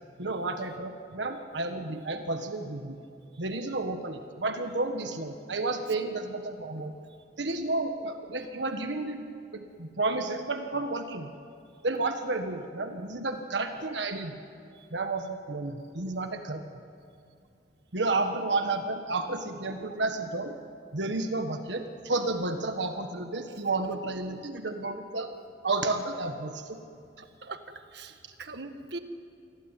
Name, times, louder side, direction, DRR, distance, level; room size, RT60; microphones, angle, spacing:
voice 1, 0.2-3.0 3.4-6.9 7.4-9.2 9.5-11.3 11.8-14.3 14.9-16.6 17.9-20.6 20.9-25.3 25.6-26.8, right 2 dB, 85° right, 6 dB, 1.5 m, -31 dB
voice 2, 27.2-27.6 27.9-29.0, right 3 dB, 65° right, 7 dB, 1.7 m, -41 dB
28.0 x 21.5 x 9.1 m, 2.6 s
head